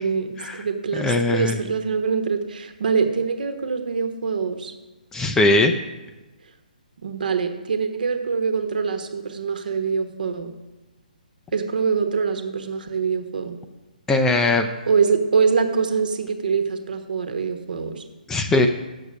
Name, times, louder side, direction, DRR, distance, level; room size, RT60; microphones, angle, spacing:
voice 1, 0.0-4.7 7.0-10.5 11.5-13.6 14.9-18.0, right 5 dB, 65° right, 7 dB, 1.2 m, -24 dB
voice 2, 0.9-1.6 5.1-5.7 14.1-14.7 18.3-18.7, left 2 dB, 10° left, 6 dB, 0.5 m, -19 dB
8.4 x 6.7 x 6.2 m, 1.1 s
figure-of-eight pair, 140°, 5 cm